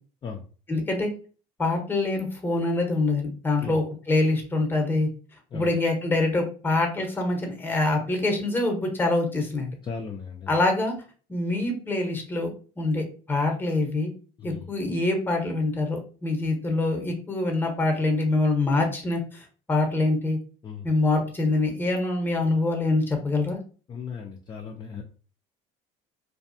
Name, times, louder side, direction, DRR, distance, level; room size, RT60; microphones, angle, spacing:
voice 1, 0.7-1.1 1.6-5.1 5.5-9.7 10.5-10.9 11.3-12.5 12.8-14.1 14.4-20.4 20.8-23.6, left 2 dB, 15° left, 3 dB, 0.8 m, -25 dB
voice 2, 9.8-10.5 14.4-14.7 20.6-20.9 23.9-25.0, left 6 dB, 30° left, 2 dB, 0.4 m, -36 dB
2.6 x 2.2 x 2.6 m, 0.39 s
supercardioid pair, 95°, 16 cm